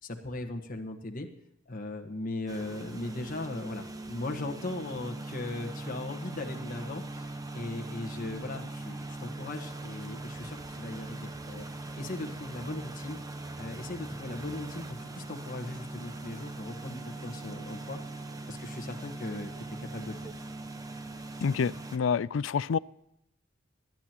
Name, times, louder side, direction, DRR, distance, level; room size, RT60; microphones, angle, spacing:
voice 1, 0.0-1.3 1.7-11.7 12.0-13.2 13.6-18.0 18.5-20.2, left 2 dB, 45° left, 3 dB, 1.4 m, -38 dB
sound 1, 2.5-22.0, right 2 dB, 20° right, 1.0 m, -41 dB
voice 2, 21.4-22.8, left 6 dB, 70° left, 20 dB, 0.4 m, -28 dB
21.0 x 10.5 x 2.9 m, 0.80 s
head